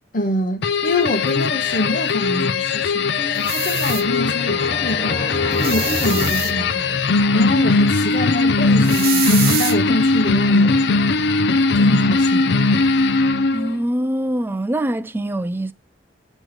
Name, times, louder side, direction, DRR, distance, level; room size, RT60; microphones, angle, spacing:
voice 1, 0.1-7.0 7.3-10.8 11.7-12.5, left 1 dB, 50° left, 1.2 m, -25 dB
sound 1, 0.6-13.8, left 3 dB, 65° left, 0.5 m, -19 dB
sound 2, 3.0-7.4, left 1 dB, 30° left, 0.8 m, -31 dB
sound 3, 3.4-4.0 5.5-6.5 8.8-9.7, right 12 dB, 55° right, 0.6 m, -26 dB
voice 2, 13.5-15.7, right 1 dB, 10° right, 0.3 m, -23 dB
7.7 x 3.1 x 5.1 m
head